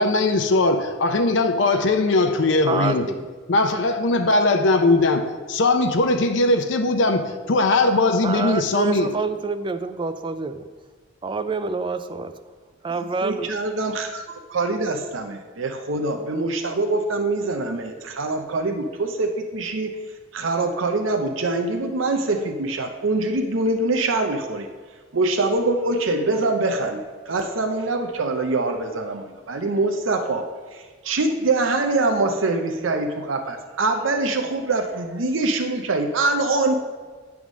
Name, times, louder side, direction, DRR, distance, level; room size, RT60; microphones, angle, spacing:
voice 1, 0.0-3.1 3.5-5.2 5.5-7.2 7.5-9.1, left 2 dB, 65° left, 0.6 m, -19 dB
voice 2, 2.7-3.3 8.2-10.7 11.2-12.3 12.8-13.5, right 4 dB, 25° right, 0.4 m, -27 dB
voice 3, 12.9-19.9 20.3-24.7 25.1-36.7, right 2 dB, 90° right, 0.7 m, -24 dB
9.5 x 3.5 x 6.2 m
head